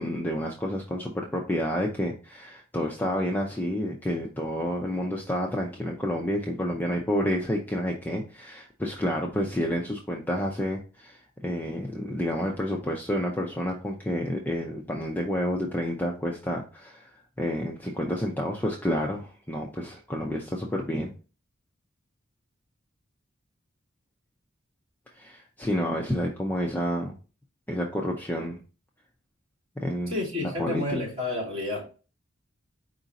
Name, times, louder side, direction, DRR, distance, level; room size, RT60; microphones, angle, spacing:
voice 1, 0.0-17.1 17.4-21.1 25.2-27.1 27.7-28.6 29.8-30.1 30.4-30.8, equal, 10° left, 0.5 m, -29 dB
voice 2, 30.1-31.9, left 2 dB, 30° right, 2.6 m, -30 dB
4.9 x 2.5 x 4.0 m
head